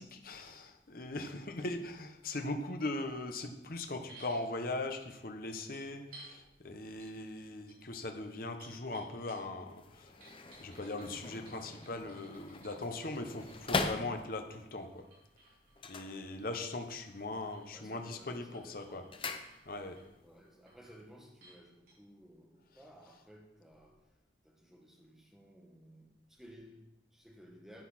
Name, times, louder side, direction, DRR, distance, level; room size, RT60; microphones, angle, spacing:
voice 1, 0.0-10.3 10.6-15.1 15.9-19.0 19.7-20.0, left 2 dB, 50° left, 6 dB, 1.0 m, -40 dB
sound 1, 4.1-4.4 5.7-6.4 7.0-7.1 7.4-9.6 10.2-13.8 14.8-18.2 18.5-19.1 19.5-20.0 20.4-21.0 21.4-21.6 21.9-22.0, right 2 dB, 50° right, 4.4 m, -58 dB
sound 2, 9.6-14.6 15.7-16.8 17.1-17.6 18.0-20.0 20.3-20.4, left 3 dB, 30° left, 0.6 m, -41 dB
voice 2, 17.4-19.2 20.2-24.1 24.4-27.8, equal, ahead, -1 dB, 1.6 m, -57 dB
10.5 x 8.2 x 4.3 m, 0.88 s
head